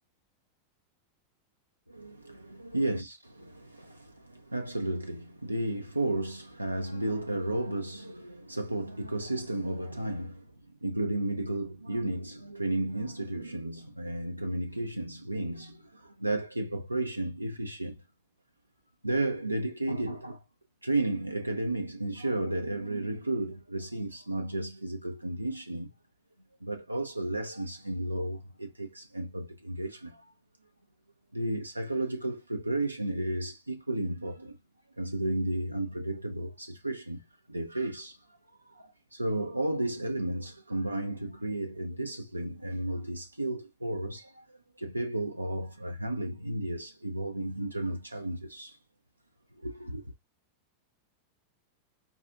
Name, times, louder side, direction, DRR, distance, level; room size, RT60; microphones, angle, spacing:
voice 1, 1.9-3.1 3.5-10.5 10.8-18.0 19.0-20.4 20.8-25.9 26.6-30.3 31.3-34.6 35.0-38.3 38.7-48.8 49.6-50.1, right 1 dB, 85° right, 0.3 m, -33 dB
4.7 x 2.3 x 2.3 m
figure-of-eight pair, 90°, 0 cm